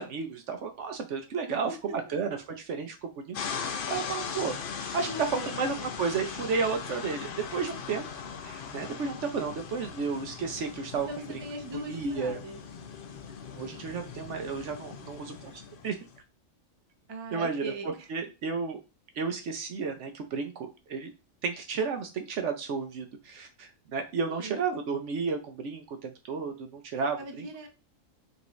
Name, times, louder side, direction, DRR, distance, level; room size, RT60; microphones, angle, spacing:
voice 1, 0.0-4.6 4.9-8.1 8.4-11.2 11.7-12.4 13.6-16.0 17.3-17.6 18.1-18.8 19.1-21.1 21.4-27.5, right 5 dB, 65° right, 6 dB, 0.9 m, -32 dB
sound 1, 3.3-16.2, left 6 dB, 55° left, 0.6 m, -39 dB
voice 2, 5.1-5.8 11.1-12.6 17.1-18.1 24.3-24.6 27.2-27.7, right 1 dB, 25° right, 4 dB, 0.6 m, -40 dB
5.3 x 2.7 x 3.1 m, 0.28 s
omnidirectional pair, 1.4 m